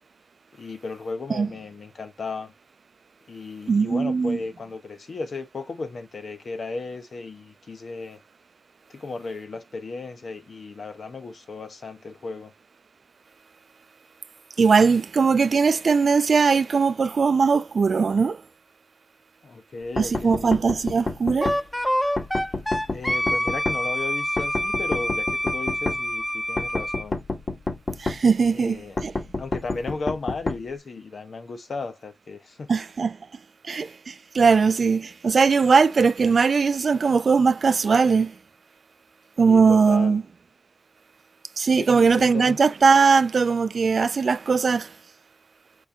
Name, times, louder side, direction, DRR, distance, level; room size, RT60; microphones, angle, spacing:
voice 1, 0.5-2.5 3.3-8.2 8.9-12.5 19.4-20.6 22.9-27.2 28.5-29.0 29.4-32.7 39.5-40.2 41.7-42.6, left 3 dB, 85° left, 0.9 m, -35 dB
voice 2, 3.7-4.4 14.6-18.4 20.0-21.6 28.0-29.1 32.7-33.2 33.6-38.3 39.4-40.2 41.6-44.9, right 5 dB, 80° right, 0.3 m, -20 dB
sound 1, 20.0-21.6 22.2-23.8 24.4-26.0 26.6-28.2 29.0-30.6, left 3 dB, 50° left, 1.0 m, -28 dB
Wind instrument woodwind instrument, 21.4-27.0, equal, 5° left, 0.4 m, -26 dB
5.2 x 3.6 x 2.7 m
wide cardioid pair, 115°, 0 cm